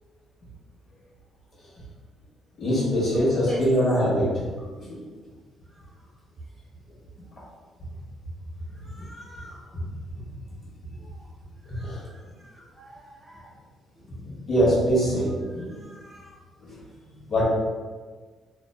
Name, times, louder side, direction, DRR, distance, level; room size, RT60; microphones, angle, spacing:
voice 1, 2.6-4.4 4.8-5.0 11.8-12.0 14.2-15.8 16.6-16.8 17.3-17.5, equal, 50° left, -6 dB, 1.0 m, -23 dB
voice 2, 3.1-3.6 8.8-9.6 11.0-11.2 11.7-13.5 15.7-16.4, equal, 25° right, -4 dB, 0.8 m, -42 dB
2.5 x 2.2 x 2.3 m, 1.4 s
cardioid pair, 90°, 0 cm